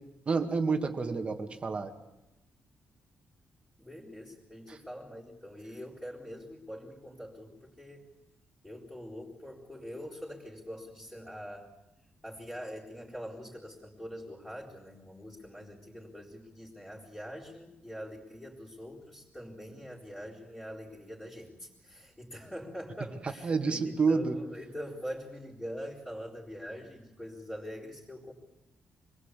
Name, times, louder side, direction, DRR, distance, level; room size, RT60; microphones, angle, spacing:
voice 1, 0.3-1.9 4.7-4.8 23.2-24.4, right 4 dB, 30° right, 6 dB, 2.1 m, -29 dB
voice 2, 3.8-8.0 8.6-11.7 12.2-28.3, equal, 5° left, -9 dB, 4.1 m, -44 dB
25.5 x 20.5 x 8.4 m, 0.92 s
wide cardioid pair, 150°, 4 cm